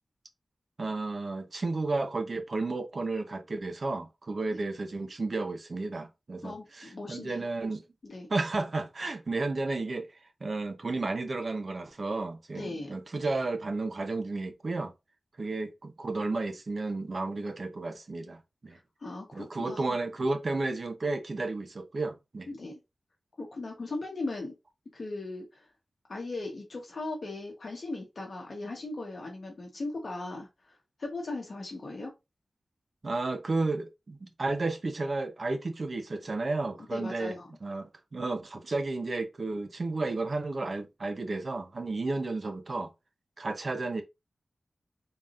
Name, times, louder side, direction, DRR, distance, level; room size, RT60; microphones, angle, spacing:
voice 1, 0.8-7.8 8.3-10.1 10.4-14.9 15.4-18.8 19.3-22.5 33.0-37.3 37.6-42.9 43.4-44.0, right 3 dB, 50° right, 0.7 m, -32 dB
voice 2, 6.4-7.5 8.0-8.3 12.5-12.9 19.0-19.8 22.5-22.8 23.4-24.5 24.9-25.7 26.1-32.1 36.9-37.5, left 2 dB, 55° left, 1.1 m, -38 dB
3.9 x 3.5 x 2.5 m
wide cardioid pair, 110°, 0 cm